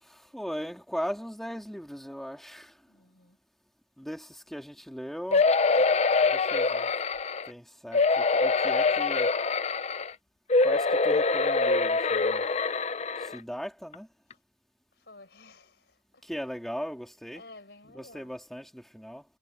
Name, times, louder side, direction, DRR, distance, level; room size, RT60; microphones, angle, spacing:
voice 1, 0.0-2.8 4.0-5.6 6.3-6.9 7.5-9.3 10.6-12.4 13.2-14.1 16.2-17.4 17.9-19.2, equal, ahead, 2.5 m, -38 dB
voice 2, 2.9-3.4 15.0-16.2 17.3-18.3, left 2 dB, 65° left, 5.4 m, -52 dB
sound 1, 5.3-7.5 7.9-10.1 10.5-13.4 13.9-14.0 14.3-14.4, left 4 dB, 35° left, 0.6 m, -24 dB
head